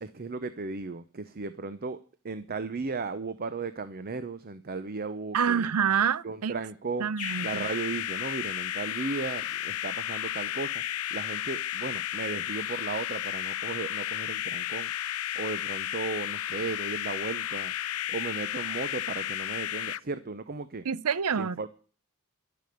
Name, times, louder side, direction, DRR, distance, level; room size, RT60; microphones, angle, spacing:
voice 1, 0.0-5.7 6.2-7.1 7.4-10.8 11.1-14.9 15.3-17.7 18.1-20.9 21.4-21.7, right 4 dB, 45° right, 0.7 m, -35 dB
voice 2, 5.3-6.5 7.0-7.7 20.9-21.6, right 7 dB, 90° right, 0.6 m, -27 dB
sound 1, 7.2-20.0, left 12 dB, 70° left, 0.5 m, -33 dB
12.5 x 6.9 x 9.2 m
head